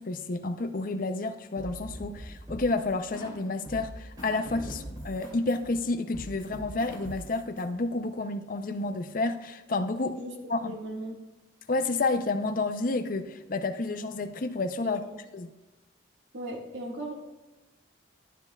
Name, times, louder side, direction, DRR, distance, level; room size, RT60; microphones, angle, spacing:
voice 1, 0.0-10.2 10.5-10.8 11.7-15.0 15.3-15.5, left 3 dB, 45° left, 8 dB, 0.5 m, -30 dB
sound 1, 1.6-3.4 3.6-7.6, equal, 20° right, 2.4 m, -42 dB
voice 2, 10.6-11.1 14.8-15.2 16.3-17.1, right 1 dB, 70° right, 0 dB, 1.7 m, -37 dB
12.0 x 10.5 x 2.3 m, 1.1 s
head